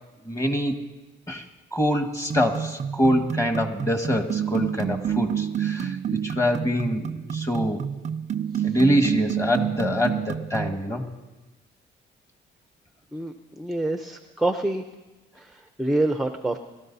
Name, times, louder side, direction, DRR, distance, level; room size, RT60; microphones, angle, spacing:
voice 1, 0.2-0.8 1.3-1.4 1.7-6.0 6.2-7.8 8.6-11.1, equal, 15° left, 5 dB, 1.6 m, -24 dB
sound 1, 2.3-10.8, right 8 dB, 35° right, 0.4 m, -29 dB
voice 2, 13.1-14.8 15.4-16.6, right 1 dB, ahead, 7 dB, 0.6 m, -27 dB
22.5 x 13.0 x 2.7 m, 1.1 s
cardioid pair, 90°, 20 cm